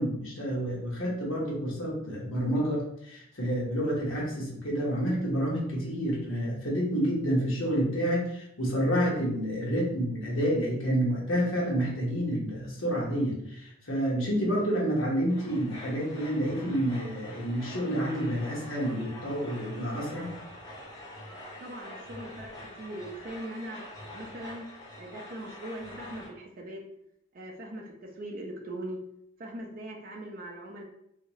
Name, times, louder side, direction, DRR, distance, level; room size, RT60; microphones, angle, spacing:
voice 1, 0.0-20.3, equal, 70° left, -4 dB, 1.1 m, -29 dB
sound 1, 15.3-26.3, left 1 dB, 20° left, 0.8 m, -45 dB
voice 2, 21.6-23.9 24.1-24.7 25.0-26.8 27.3-29.0 29.4-30.8, right 1 dB, 40° right, 1 dB, 0.4 m, -40 dB
2.8 x 2.7 x 3.0 m, 0.75 s
head